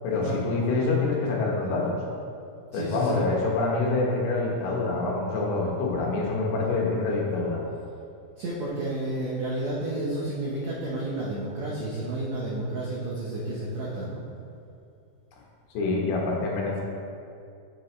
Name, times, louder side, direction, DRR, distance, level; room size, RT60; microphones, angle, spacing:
voice 1, 0.0-2.0 2.7-7.6 15.7-16.8, left 3 dB, 70° left, -2 dB, 2.9 m, -26 dB
voice 2, 2.7-3.2 8.4-14.2, right 2 dB, 85° right, -6 dB, 1.5 m, -31 dB
10.0 x 7.5 x 3.2 m, 2.5 s
omnidirectional pair, 4.8 m